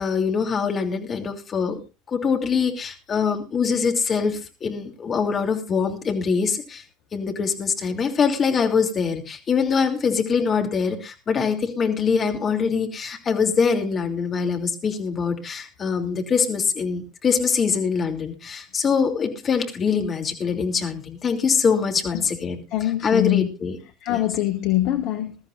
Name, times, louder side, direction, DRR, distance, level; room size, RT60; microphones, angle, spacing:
voice 1, 0.0-1.8 2.1-6.8 7.1-23.8 24.1-24.2, left 5 dB, 30° left, 2.9 m, -23 dB
voice 2, 22.7-23.5 24.0-25.4, left 14 dB, 55° left, 1.1 m, -23 dB
21.0 x 13.5 x 2.6 m
figure-of-eight pair, 75°, 0 cm